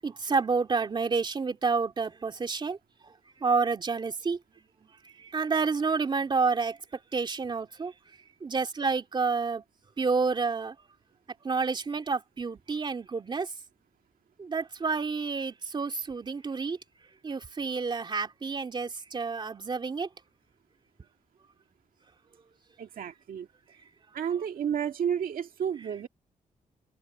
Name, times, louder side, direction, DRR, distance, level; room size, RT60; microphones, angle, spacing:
voice 1, 0.0-2.8 3.4-4.4 5.0-6.8 7.1-7.9 8.4-9.6 10.0-10.7 11.4-13.5 14.4-16.8 17.2-20.1, right 4 dB, 30° right, 3.1 m, -29 dB
voice 2, 22.8-23.5 24.1-26.1, right 8 dB, 80° right, 1.9 m, -31 dB
wide cardioid pair, 160°, 15 cm